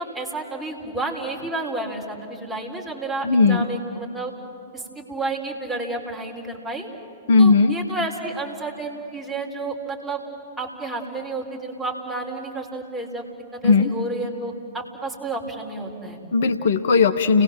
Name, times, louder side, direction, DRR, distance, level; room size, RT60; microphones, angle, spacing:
voice 1, 0.0-4.3 4.7-6.9 7.4-10.2 10.6-13.2 13.5-16.2, right 2 dB, 5° right, -2 dB, 4.3 m, -31 dB
voice 2, 3.2-3.6 7.3-7.8 13.6-13.9 16.3-17.4, left 4 dB, 60° left, 10 dB, 0.9 m, -17 dB
30.0 x 19.5 x 7.5 m, 2.8 s
figure-of-eight pair, 110°, 0 cm